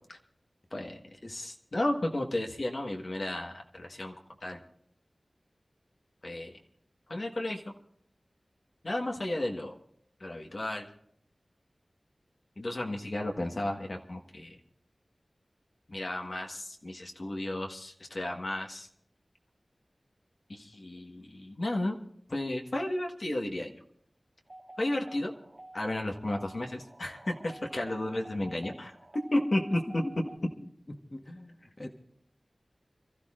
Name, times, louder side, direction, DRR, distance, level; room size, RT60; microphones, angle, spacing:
voice 1, 0.7-4.1 4.4-4.6 6.2-6.5 7.1-7.7 8.8-9.8 10.2-10.8 12.6-14.6 15.9-18.9 20.5-22.0 22.3-23.7 24.8-25.3 25.7-28.9 29.3-29.6 29.9-30.0, left 1 dB, 55° left, 1 dB, 1.5 m, -33 dB
sound 1, 24.5-30.4, right 1 dB, 35° right, 1.6 m, -50 dB
voice 2, 29.7-30.1 31.1-31.9, left 1 dB, 35° left, 3 dB, 1.3 m, -40 dB
28.5 x 14.0 x 2.5 m, 0.68 s
wide cardioid pair, 75°, 0 cm